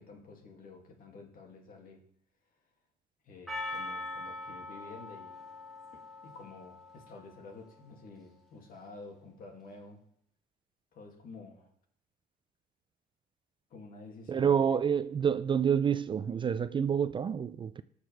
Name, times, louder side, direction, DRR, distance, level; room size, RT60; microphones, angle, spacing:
voice 1, 0.0-2.0 3.2-5.4 5.9-10.0 10.9-11.7 13.7-14.8, left 3 dB, 55° left, 2.5 m, -50 dB
Percussion, 3.5-7.8, left 2 dB, ahead, 2.2 m, -42 dB
voice 2, 14.3-17.8, right 7 dB, 30° right, 0.4 m, -28 dB
18.5 x 6.6 x 3.4 m
cardioid pair, 110°, 17 cm